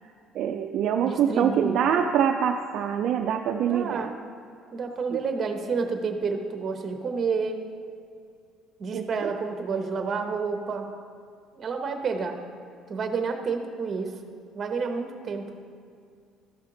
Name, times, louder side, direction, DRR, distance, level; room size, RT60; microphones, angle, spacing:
voice 1, 0.3-4.1 5.1-5.2 8.9-9.3, right 8 dB, 55° right, 4 dB, 0.4 m, -25 dB
voice 2, 1.1-1.8 3.6-4.1 4.7-7.6 8.8-10.9 11.5-12.4 12.9-14.2 14.5-15.5, right 5 dB, 30° right, 5 dB, 0.9 m, -29 dB
13.5 x 5.8 x 3.8 m, 2.3 s
cardioid pair, 155°, 0 cm